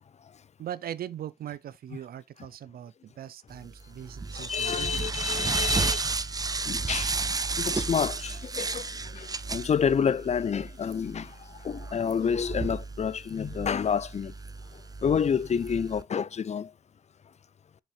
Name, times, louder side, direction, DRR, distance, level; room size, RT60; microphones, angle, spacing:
voice 1, 0.6-5.1, right 10 dB, 85° right, 0.5 m, -40 dB
sound 1, 3.6-16.0, right 4 dB, 25° right, 0.4 m, -33 dB
voice 2, 4.4-6.1 6.7-7.1 7.6-8.9 9.1-11.3 11.6-14.3 15.0-16.7, left 7 dB, 45° left, 0.4 m, -28 dB
6.6 x 6.2 x 3.1 m
cardioid pair, 65°, 15 cm